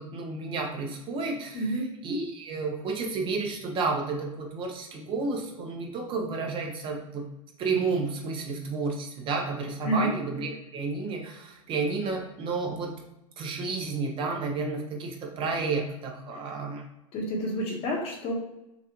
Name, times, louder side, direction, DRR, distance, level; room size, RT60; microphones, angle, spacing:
voice 1, 0.0-1.6 2.0-7.2 7.6-12.9 13.4-16.8, right 4 dB, 30° right, 1 dB, 0.8 m, -31 dB
voice 2, 1.5-1.9 9.8-10.1 17.1-18.3, equal, 35° left, 0 dB, 1.1 m, -29 dB
5.9 x 2.5 x 2.9 m, 0.92 s
hypercardioid pair, 125°, 18 cm